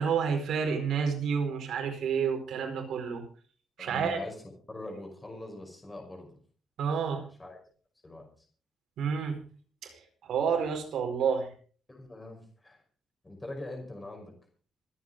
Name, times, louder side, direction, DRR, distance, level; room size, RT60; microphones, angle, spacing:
voice 1, 0.0-3.2 3.8-4.2 6.8-7.2 9.0-9.4 9.8-9.9 10.2-11.5, right 6 dB, 70° right, 4 dB, 4.8 m, -29 dB
voice 2, 3.8-4.3 4.7-6.4 7.4-7.6 8.0-8.5 11.9-12.8 13.2-14.3, left 2 dB, 15° left, 2 dB, 5.5 m, -42 dB
26.5 x 9.2 x 3.8 m, 0.41 s
cardioid pair, 140°, 0 cm